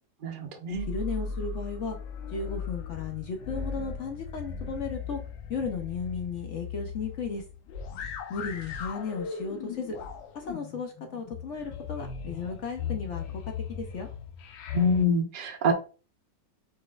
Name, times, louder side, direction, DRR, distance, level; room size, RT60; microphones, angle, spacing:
voice 1, 0.2-0.9 14.7-15.7, left 1 dB, 70° right, 0.5 m, -25 dB
sound 1, 0.7-15.0, left 6 dB, 85° left, 1.4 m, -38 dB
voice 2, 0.9-2.0 2.3-5.2 5.5-7.4 8.3-10.0 10.3-13.2 13.7-14.1, left 5 dB, 55° left, 0.8 m, -35 dB
4.5 x 4.1 x 2.4 m
omnidirectional pair, 2.0 m